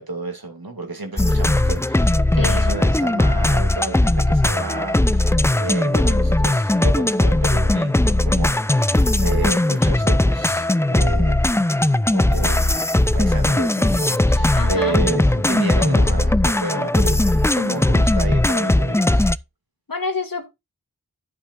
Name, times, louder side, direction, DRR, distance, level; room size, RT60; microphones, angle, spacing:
voice 1, 0.0-11.4 11.9-12.7 13.1-17.2 17.5-19.3, right 2 dB, 85° right, 2.5 m, -31 dB
sound 1, 1.2-19.4, left 1 dB, 10° left, 0.4 m, -18 dB
voice 2, 2.3-2.8 14.5-15.0 19.9-20.5, left 3 dB, 70° left, 2.3 m, -28 dB
11.0 x 8.8 x 2.6 m
wide cardioid pair, 60°, 35 cm